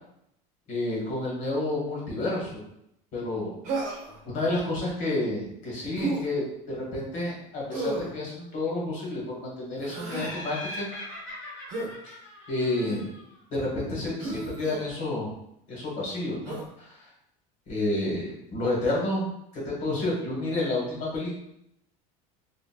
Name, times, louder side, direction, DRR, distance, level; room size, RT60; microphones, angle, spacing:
voice 1, 0.7-2.6 3.1-3.5 4.2-10.9 12.5-13.0 13.5-15.3 15.7-17.1 17.7-21.3, left 2 dB, 50° left, -4 dB, 1.3 m, -30 dB
Human voice, 3.6-4.2 5.9-6.2 7.7-8.1 9.8-10.3 11.7-11.9 12.8-13.1 14.2-14.8 16.4-16.7, right 2 dB, 50° right, 0.8 m, -32 dB
Laughter, 10.1-13.4, left 1 dB, 70° left, 1.2 m, -40 dB
2.9 x 2.5 x 2.3 m, 0.77 s
cardioid pair, 140°, 17 cm